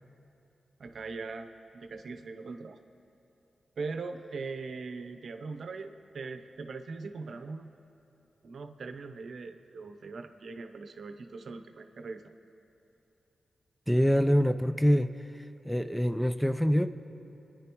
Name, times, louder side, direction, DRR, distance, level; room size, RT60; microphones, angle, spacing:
voice 1, 0.8-2.8 3.8-7.7 8.4-12.2, right 4 dB, 70° right, 7 dB, 0.7 m, -40 dB
voice 2, 13.9-15.1 15.7-16.9, equal, ahead, 11 dB, 0.5 m, -25 dB
26.5 x 10.0 x 3.0 m, 2.8 s
cardioid pair, 50°, 0 cm